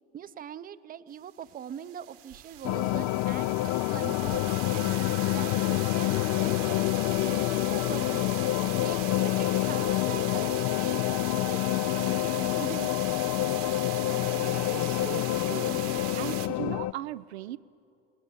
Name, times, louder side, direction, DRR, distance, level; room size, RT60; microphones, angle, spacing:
voice 1, 0.1-4.4 4.7-5.0 5.2-8.3 8.8-12.9, right 9 dB, 25° right, 15 dB, 0.6 m, -42 dB
sound 1, 1.5-16.5, right 12 dB, 65° right, 1.4 m, -40 dB
sound 2, 2.6-16.9, left 16 dB, 55° left, 0.5 m, -27 dB
voice 2, 14.0-15.8 16.2-17.6, right 15 dB, 85° right, 14 dB, 0.5 m, -38 dB
20.0 x 19.0 x 7.4 m, 2.5 s
hypercardioid pair, 80°, 32 cm